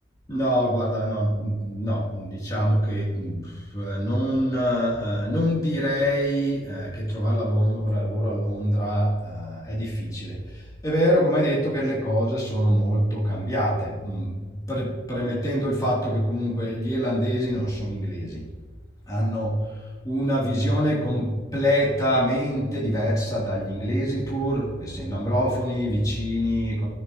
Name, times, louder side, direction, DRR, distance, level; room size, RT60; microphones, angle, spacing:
voice 1, 0.3-18.5 19.1-26.9, equal, 20° left, -7 dB, 3.1 m, -25 dB
18.0 x 6.7 x 3.1 m, 1.4 s
head